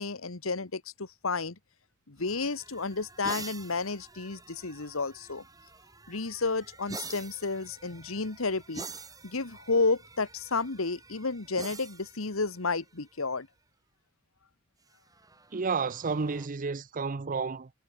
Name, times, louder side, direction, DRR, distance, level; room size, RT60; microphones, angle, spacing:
voice 1, 0.0-1.5 2.1-5.4 6.1-8.9 9.2-13.5, left 3 dB, 90° left, 1.6 m, -31 dB
sound 1, 2.2-13.3 14.9-16.5, right 4 dB, 20° right, 3.7 m, -47 dB
voice 2, 15.5-17.7, right 4 dB, 40° right, 0.6 m, -31 dB
head